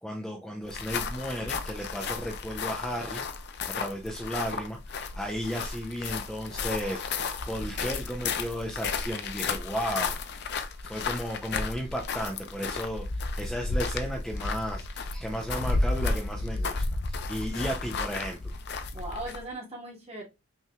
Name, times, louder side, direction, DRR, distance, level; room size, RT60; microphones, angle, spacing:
voice 1, 0.0-3.2 3.7-10.2 10.4-10.5 10.8-13.0 13.4-18.6, equal, 5° left, 0.6 m, -34 dB
sound 1, 0.6-19.5, left 3 dB, 55° left, 0.5 m, -33 dB
voice 2, 18.9-20.2, right 1 dB, 30° right, 1.8 m, -39 dB
5.5 x 3.1 x 2.3 m
head